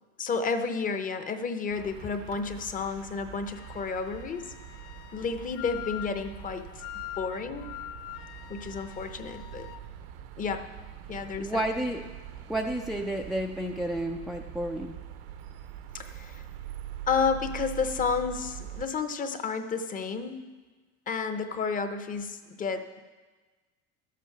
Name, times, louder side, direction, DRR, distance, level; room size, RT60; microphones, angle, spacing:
voice 1, 0.2-4.5 5.1-6.7 7.2-7.7 8.5-9.7 10.4-10.7 11.1-11.7 15.9-16.4 17.1-20.5 21.1-23.0, left 5 dB, 25° left, 8 dB, 0.7 m, -31 dB
sound 1, 1.7-18.8, right 11 dB, 75° right, 1.0 m, -44 dB
Wind instrument woodwind instrument, 3.5-9.8, left 15 dB, 60° left, 0.6 m, -44 dB
voice 2, 11.4-12.0 12.5-15.0, right 1 dB, ahead, 1 dB, 0.3 m, -31 dB
12.5 x 8.4 x 5.9 m, 1.3 s
cardioid pair, 145°, 33 cm